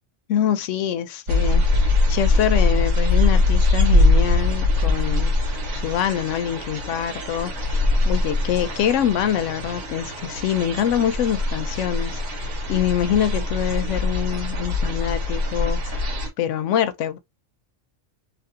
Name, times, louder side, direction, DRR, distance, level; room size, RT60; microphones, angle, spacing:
voice 1, 0.3-5.3 5.7-16.0 16.4-17.2, left 10 dB, 75° left, 0.9 m, -25 dB
sound 1, 1.3-16.3, left 2 dB, 85° right, 1.4 m, -22 dB
2.9 x 2.5 x 2.6 m
omnidirectional pair, 1.3 m